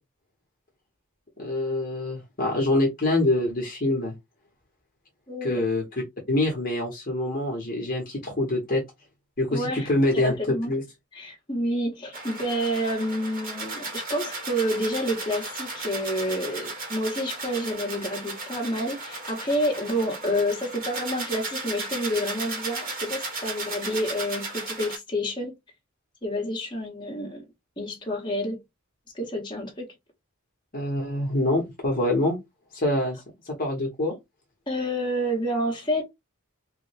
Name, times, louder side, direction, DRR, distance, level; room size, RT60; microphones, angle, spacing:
voice 1, 1.4-4.1 5.4-5.8 6.3-8.8 9.4-10.8 30.7-32.4 32.7-33.2 33.5-34.2, left 1 dB, 40° left, 1.1 m, -25 dB
voice 2, 5.3-5.6 9.5-10.7 11.1-25.6 26.2-27.4 27.8-28.6 29.1-29.9 34.7-36.0, equal, 20° left, 1.2 m, -29 dB
sound 1, 12.1-25.0, right 3 dB, 40° right, 1.2 m, -35 dB
3.5 x 2.2 x 3.3 m
head